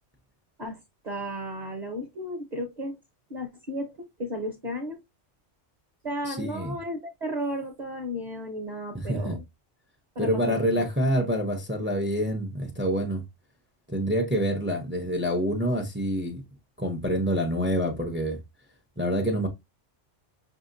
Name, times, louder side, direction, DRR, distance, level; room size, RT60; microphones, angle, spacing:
voice 1, 1.0-3.0 3.3-3.9 4.2-5.0 6.0-9.4 10.1-10.8, equal, 40° right, 0.9 m, -34 dB
voice 2, 6.2-6.8 8.9-9.4 10.2-13.2 13.9-16.4 16.8-18.4 19.0-19.5, equal, 15° right, 0.5 m, -27 dB
5.8 x 2.8 x 2.5 m
omnidirectional pair, 1.2 m